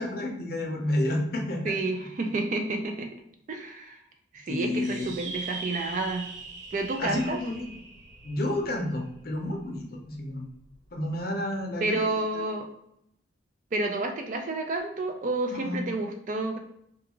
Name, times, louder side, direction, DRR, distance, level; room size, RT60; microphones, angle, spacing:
voice 1, 0.0-1.8 4.5-5.1 7.0-7.7 8.2-10.5 10.9-12.0 12.3-12.4 15.5-15.8, left 1 dB, 50° left, 0 dB, 0.6 m, -30 dB
voice 2, 1.6-3.1 3.5-3.9 4.3-6.2 6.7-7.4 11.8-12.7 13.7-16.6, right 2 dB, 40° right, 4 dB, 0.3 m, -30 dB
sound 1, 4.8-9.6, right 3 dB, 75° right, 0.6 m, -41 dB
2.4 x 2.3 x 2.9 m, 0.76 s
head